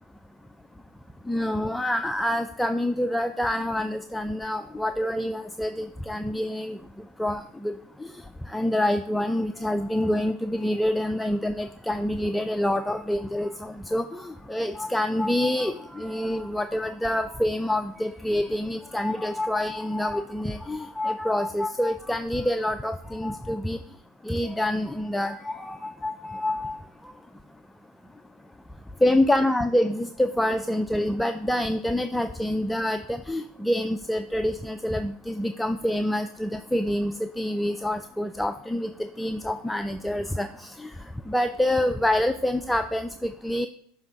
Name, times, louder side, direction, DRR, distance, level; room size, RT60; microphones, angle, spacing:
voice 1, 1.3-6.8 7.2-7.7 8.5-23.8 24.2-26.8 29.0-38.9 39.2-40.9 41.3-43.7, left 1 dB, 5° left, 8 dB, 0.3 m, -27 dB
7.2 x 3.4 x 5.3 m, 0.63 s
hypercardioid pair, 85°, 0 cm